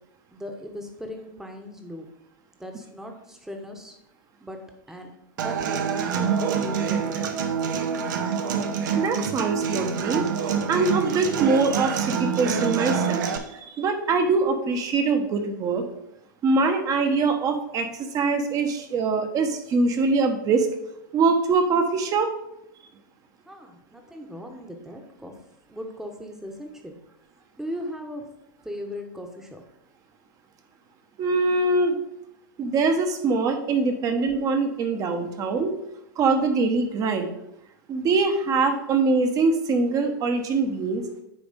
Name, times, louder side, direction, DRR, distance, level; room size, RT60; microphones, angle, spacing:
voice 1, 0.3-2.1 2.6-4.0 4.4-5.1 5.4-7.5 13.3-13.4 23.4-25.4 25.7-27.0 27.6-28.3 28.6-29.6, equal, 5° right, 4 dB, 1.2 m, -38 dB
Human voice / Acoustic guitar, 5.4-13.4, right 6 dB, 65° right, 0.9 m, -26 dB
voice 2, 9.0-10.3 10.7-15.9 16.4-20.7 21.1-22.3 31.2-32.0 32.6-35.7 36.2-37.3 37.9-41.0, right 3 dB, 30° right, 6 dB, 1.2 m, -23 dB
9.3 x 3.5 x 5.1 m, 0.82 s
hypercardioid pair, 110°, 11 cm